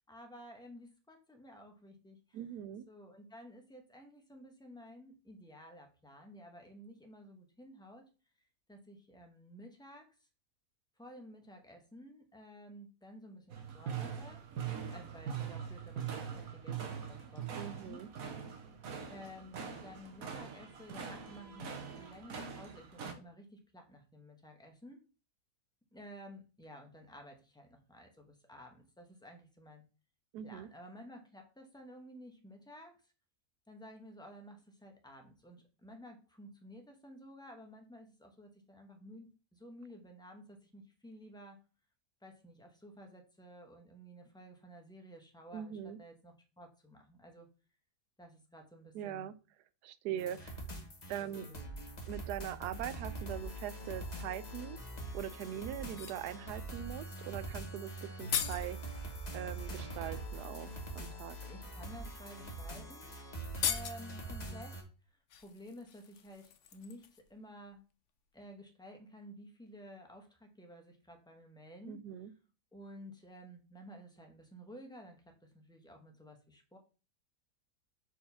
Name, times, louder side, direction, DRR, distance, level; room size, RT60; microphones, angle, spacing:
voice 1, 0.1-2.4 2.9-8.1 8.7-10.1 11.0-14.4 14.9-18.0 19.0-25.0 25.9-29.8 30.4-33.0 33.7-41.6 42.2-47.5 48.2-49.3 50.1-50.5 51.2-51.8 61.4-63.1 63.6-64.9 65.4-67.8 68.3-72.0 72.7-76.8, equal, 5° left, 3 dB, 0.8 m, -53 dB
voice 2, 2.3-2.9 17.6-18.1 30.3-30.7 45.5-46.0 48.9-49.3 49.8-50.5 51.1-51.5 52.1-54.8 55.1-58.8 59.3-61.4 71.9-72.3, right 11 dB, 80° right, 14 dB, 1.1 m, -41 dB
sound 1, 13.5-23.1, right 7 dB, 60° right, 1.3 m, -42 dB
sound 2, 50.2-64.8, right 2 dB, 30° left, 1.2 m, -43 dB
sound 3, 55.8-56.3 57.8-57.9 58.0-58.7 60.1-60.2 60.9-61.1 62.0-62.1 62.4-62.6 62.8-62.9 63.5-64.2 65.3-67.3 67.6-67.8, left 9 dB, 60° left, 0.8 m, -39 dB
4.7 x 4.4 x 5.6 m, 0.34 s
omnidirectional pair, 1.8 m